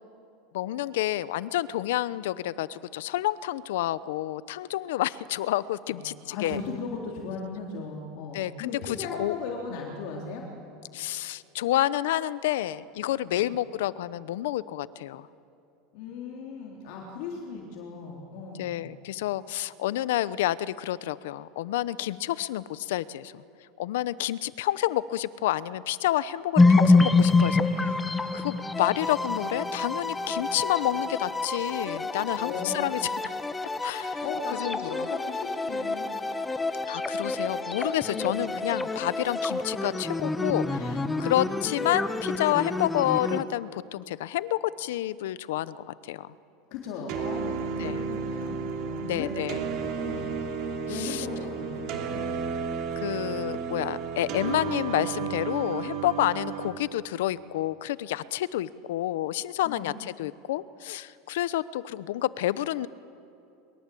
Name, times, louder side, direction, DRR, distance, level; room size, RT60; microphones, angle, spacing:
voice 1, 0.5-6.6 8.3-9.4 10.9-15.3 18.6-23.4 23.8-27.9 28.3-33.0 33.8-34.2 34.6-35.1 36.9-46.3 47.8-48.0 49.0-49.6 51.0-51.3 52.1-52.4 53.0-62.9, left 14 dB, 80° left, 17 dB, 0.8 m, -29 dB
voice 2, 5.9-10.4 13.3-13.5 15.9-18.8 27.8-28.2 32.4-33.0 34.2-36.1 38.1-38.5 46.7-49.3 49.8-50.3 50.9-52.1 59.6-59.9, left 4 dB, 55° left, -1 dB, 3.5 m, -37 dB
sound 1, 26.6-43.4, left 3 dB, 10° left, 1.0 m, -27 dB
sound 2, 47.1-56.7, right 6 dB, 45° right, 3.1 m, -32 dB
23.5 x 23.0 x 8.5 m, 2.9 s
supercardioid pair, 165°, 0 cm